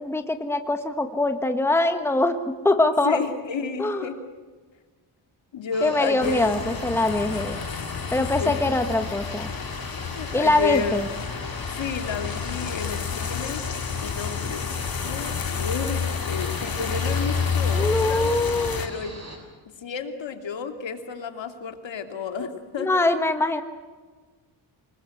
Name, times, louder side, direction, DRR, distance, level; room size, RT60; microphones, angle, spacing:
voice 1, 0.0-2.4 2.6-3.2 3.8-4.1 5.8-7.6 8.1-9.5 10.3-11.1 17.7-18.8 22.8-23.6, left 2 dB, 5° left, 7 dB, 1.4 m, -23 dB
voice 2, 3.0-4.2 5.5-6.6 8.2-8.8 10.1-11.0 11.7-13.6 14.0-14.7 15.0-18.3 18.8-19.2 19.8-22.9, left 5 dB, 65° left, 6 dB, 2.8 m, -31 dB
sound 1, 5.7-19.4, right 1 dB, 35° right, 6.6 m, -41 dB
sound 2, 6.2-18.9, left 6 dB, 45° left, 2.2 m, -29 dB
26.5 x 20.0 x 7.9 m, 1.4 s
cardioid pair, 95°, 48 cm